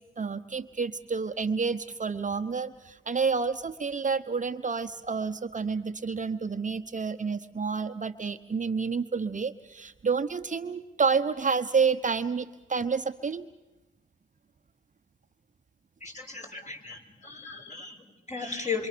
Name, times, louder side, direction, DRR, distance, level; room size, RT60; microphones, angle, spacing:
voice 1, 0.2-13.5, right 5 dB, 35° right, 9 dB, 1.0 m, -29 dB
voice 2, 16.0-18.9, left 5 dB, 35° left, 2 dB, 6.5 m, -36 dB
27.5 x 25.5 x 6.9 m, 1.1 s
cardioid pair, 60°, 21 cm